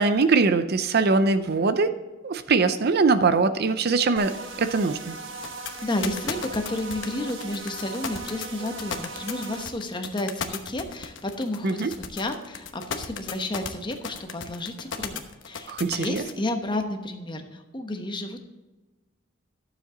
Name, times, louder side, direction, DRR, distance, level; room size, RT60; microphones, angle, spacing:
voice 1, 0.0-5.2 11.6-11.9 15.7-16.2, right 4 dB, 50° right, 11 dB, 0.6 m, -22 dB
sound 1, 4.2-9.7, right 3 dB, 70° right, 1.3 m, -39 dB
sound 2, 5.4-16.3, left 6 dB, 65° left, 1.0 m, -34 dB
voice 2, 5.8-18.4, left 1 dB, 25° left, 5 dB, 1.0 m, -31 dB
12.0 x 7.3 x 3.8 m, 1.1 s
head